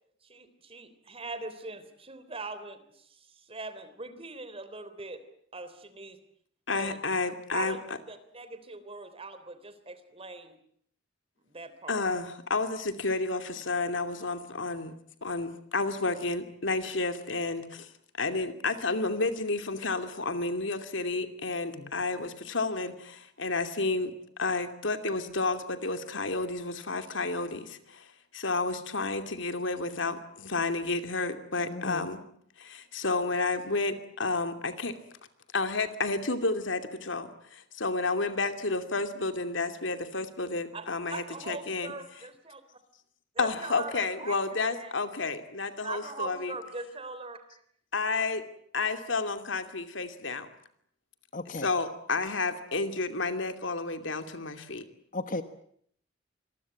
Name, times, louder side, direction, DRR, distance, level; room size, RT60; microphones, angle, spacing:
voice 1, 0.2-5.2 5.5-6.2 6.7-7.0 7.5-7.8 8.1-10.5 11.5-12.1 40.7-42.6 43.3-44.4 44.7-44.9 45.8-47.6 48.1-48.2, right 3 dB, 30° right, 11 dB, 3.4 m, -41 dB
voice 2, 6.7-7.8 11.9-14.9 15.2-17.9 18.2-24.1 24.4-32.2 32.6-35.0 35.5-41.9 43.4-46.5 47.9-48.4 48.7-50.5 51.5-54.8, left 3 dB, 70° left, 8 dB, 2.7 m, -31 dB
voice 3, 31.7-32.1 51.3-51.7 55.1-55.4, left 2 dB, 45° left, 10 dB, 1.3 m, -35 dB
26.5 x 22.0 x 8.7 m, 0.67 s
head